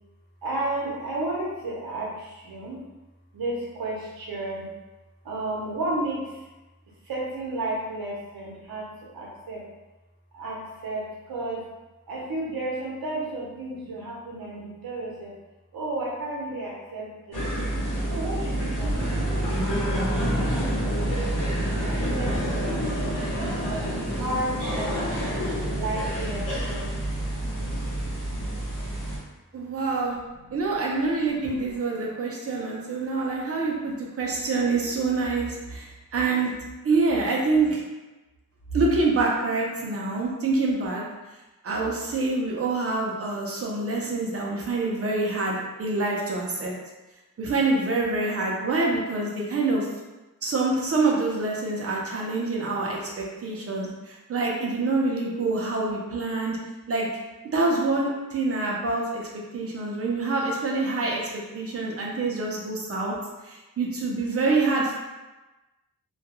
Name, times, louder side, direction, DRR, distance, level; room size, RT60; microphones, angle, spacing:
voice 1, 0.4-2.8 3.3-4.7 5.2-6.5 7.0-9.7 10.3-11.7 12.1-15.3 15.7-17.5 18.1-21.4 21.9-23.1 23.6-25.3 25.7-27.0 30.3-30.4 31.4-31.5, right 2 dB, 80° right, -3 dB, 0.7 m, -33 dB
sound 1, 17.3-29.2, right 1 dB, 60° left, 0.9 m, -27 dB
voice 2, 29.5-30.2 30.5-35.9 36.1-36.5 36.8-37.8 38.7-41.0 41.6-46.7 47.4-49.9 50.4-56.6 56.9-57.1 57.5-59.3 59.5-63.1 63.4-65.0, right 3 dB, 40° right, -2 dB, 0.5 m, -26 dB
2.3 x 2.2 x 2.8 m, 1.1 s
wide cardioid pair, 180°, 35 cm